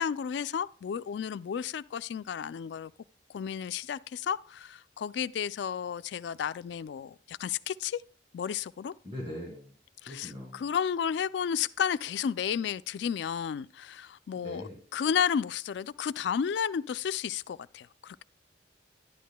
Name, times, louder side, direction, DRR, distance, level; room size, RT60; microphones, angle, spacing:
voice 1, 0.0-2.9 3.3-8.0 8.3-8.9 10.0-18.2, left 7 dB, 70° left, 0.3 m, -32 dB
voice 2, 9.0-9.7 10.1-10.6 14.4-14.8, equal, 25° right, 2.2 m, -40 dB
11.5 x 10.0 x 2.2 m
head